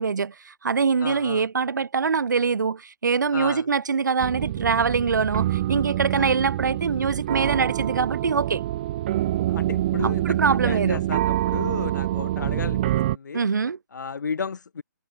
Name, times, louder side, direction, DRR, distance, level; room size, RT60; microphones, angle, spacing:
voice 1, 0.0-8.6 10.0-11.0 13.3-13.8, right 5 dB, 65° right, 6.8 m, -24 dB
voice 2, 1.0-1.5 3.3-3.7 6.1-6.3 9.5-12.8 13.1-13.5 13.9-14.8, left 5 dB, 65° left, 4.4 m, -33 dB
sound 1, 4.2-13.2, right 14 dB, 30° right, 3.5 m, -26 dB
hypercardioid pair, 165°, 10 cm